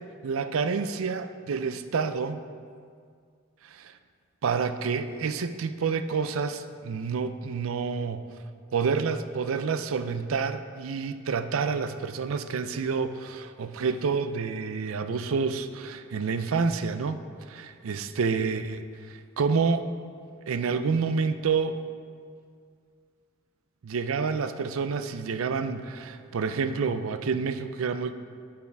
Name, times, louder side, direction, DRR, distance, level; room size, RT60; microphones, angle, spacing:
voice 1, 0.2-2.4 3.7-3.9 4.4-8.3 8.7-17.2 17.5-18.8 19.4-19.9 20.5-21.8 23.8-28.1, right 5 dB, 80° right, 10 dB, 0.4 m, -28 dB
14.0 x 4.8 x 3.4 m, 2.1 s
head